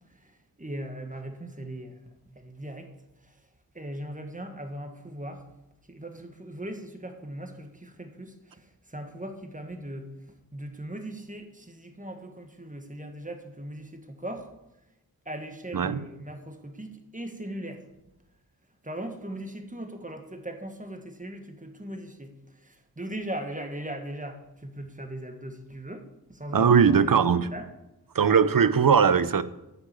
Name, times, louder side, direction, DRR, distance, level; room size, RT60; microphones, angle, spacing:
voice 1, 0.1-2.9 3.2-3.4 3.7-5.5 5.9-10.1 10.5-14.5 15.2-17.9 18.8-27.7, right 1 dB, 20° right, 5 dB, 1.7 m, -39 dB
voice 2, 26.5-27.5 28.1-29.4, right 6 dB, 65° right, 14 dB, 0.7 m, -20 dB
9.8 x 7.0 x 8.4 m, 0.92 s
wide cardioid pair, 65°, 37 cm